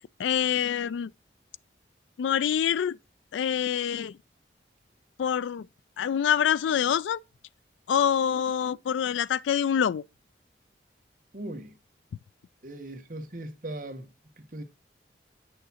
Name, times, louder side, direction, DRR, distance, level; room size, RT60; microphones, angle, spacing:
voice 1, 0.2-1.1 2.2-3.0 3.3-4.2 5.2-5.7 6.0-7.2 7.9-10.0, left 8 dB, 90° left, 0.3 m, -26 dB
voice 2, 11.3-11.7 12.6-14.1 14.5-14.6, right 1 dB, 45° right, 1.0 m, -38 dB
9.3 x 6.4 x 2.8 m
head